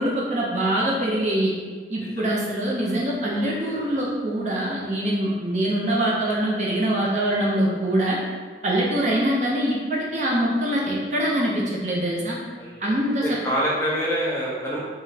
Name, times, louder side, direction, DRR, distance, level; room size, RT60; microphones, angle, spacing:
voice 1, 0.0-1.5 1.9-8.2 8.6-12.4 12.8-13.4, right 1 dB, 40° right, -4 dB, 0.6 m, -24 dB
voice 2, 12.5-14.8, equal, 15° left, -7 dB, 0.7 m, -27 dB
3.8 x 3.0 x 2.8 m, 1.5 s
head